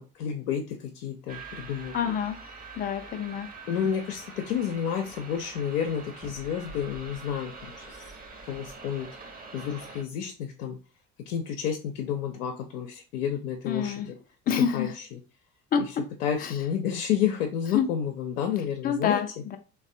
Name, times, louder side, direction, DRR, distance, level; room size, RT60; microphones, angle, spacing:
voice 1, 0.0-2.1 3.7-8.2 8.5-9.1 9.5-10.8 11.3-13.9 14.5-15.2 15.8-15.9 16.2-19.2, left 8 dB, 70° left, 4 dB, 0.6 m, -30 dB
sound 1, 1.3-10.0, right 4 dB, 20° right, 0.7 m, -45 dB
voice 2, 1.9-2.4 2.7-3.5 13.6-14.1 14.5-14.9 15.7-16.0 16.4-16.5 17.7-17.9 18.8-19.6, left 7 dB, 20° left, 8 dB, 0.3 m, -27 dB
3.2 x 2.1 x 2.6 m, 0.34 s
figure-of-eight pair, 60°, 46 cm